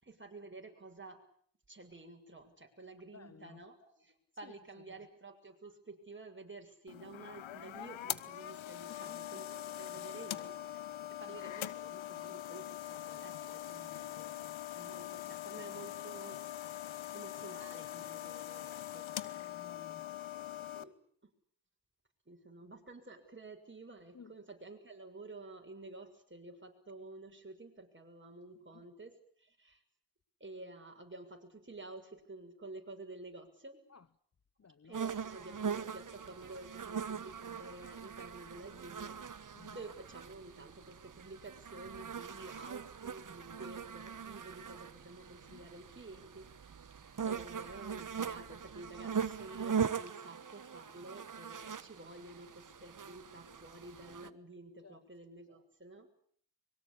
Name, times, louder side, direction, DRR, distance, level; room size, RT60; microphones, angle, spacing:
voice 1, 0.0-1.2 1.7-9.5 9.7-10.9 11.2-16.4 17.1-19.1 20.8-20.9 21.2-21.3 22.3-29.8 30.4-33.8 34.8-46.9 47.2-56.1, right 2 dB, 25° right, 6.8 m, -51 dB
voice 2, 3.1-3.6 4.4-4.5 4.9-5.1 8.9-9.2 18.8-18.9 19.2-20.2 24.1-24.3 28.7-28.8 33.9-34.1 34.6-35.0 39.5-39.8 45.5-45.7 54.8-55.0, left 5 dB, 35° left, 1.1 m, -56 dB
sound 1, 6.9-20.8, left 13 dB, 80° left, 1.3 m, -43 dB
sound 2, 34.9-54.3, right 7 dB, 45° right, 1.3 m, -41 dB
24.5 x 23.0 x 8.7 m
supercardioid pair, 50°, 46 cm